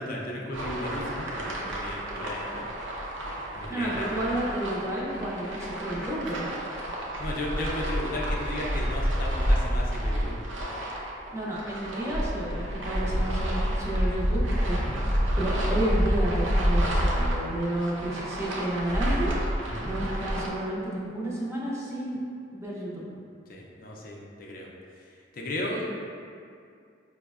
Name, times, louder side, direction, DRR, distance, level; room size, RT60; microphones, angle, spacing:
voice 1, 0.0-2.7 3.5-4.2 7.2-10.4 12.5-12.6 13.0-13.2 14.8-15.0 19.6-19.9 23.5-24.7 25.0-25.1 25.3-25.8, left 1 dB, 50° left, -2 dB, 0.4 m, -35 dB
sound 1, 0.5-20.5, equal, 75° right, 0.6 m, -29 dB
voice 2, 3.7-6.5 11.3-14.9 15.4-19.3 19.8-22.2 22.5-23.0 25.7-25.8, right 1 dB, 15° right, -6 dB, 0.4 m, -31 dB
5.2 x 2.0 x 2.3 m, 2.3 s
head